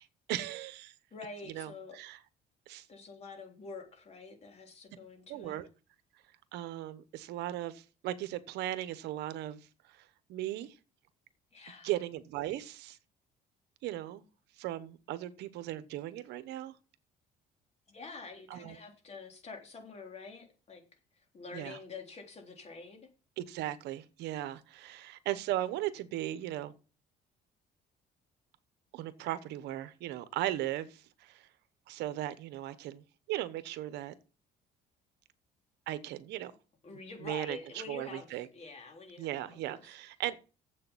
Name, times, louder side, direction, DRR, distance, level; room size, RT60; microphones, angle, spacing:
voice 1, 0.0-0.9 1.5-2.2 2.7-2.9 5.3-5.7 6.5-9.6 9.9-10.8 11.8-13.0 13.8-14.2 14.6-16.7 18.5-18.8 21.5-21.8 23.4-26.7 28.9-31.5 31.9-34.1 35.9-36.5 37.2-38.5 39.2-40.5, right 14 dB, 85° right, 1.0 m, -37 dB
voice 2, 1.1-2.0 2.9-5.6 11.5-11.9 17.9-20.8 21.3-23.0 36.8-39.8, left 4 dB, 40° left, 3.5 m, -47 dB
7.6 x 6.8 x 7.1 m
cardioid pair, 110°, 17 cm